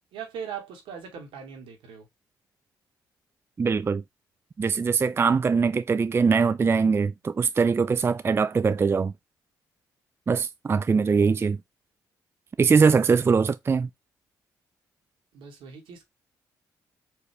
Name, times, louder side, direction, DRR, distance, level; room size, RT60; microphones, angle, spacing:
voice 1, 0.1-2.0 15.3-16.0, right 7 dB, 75° right, 1.3 m, -39 dB
voice 2, 3.6-4.0 4.6-9.1 10.3-11.6 12.6-13.9, right 5 dB, 30° right, 0.3 m, -22 dB
4.6 x 2.6 x 3.3 m
hypercardioid pair, 45°, 9 cm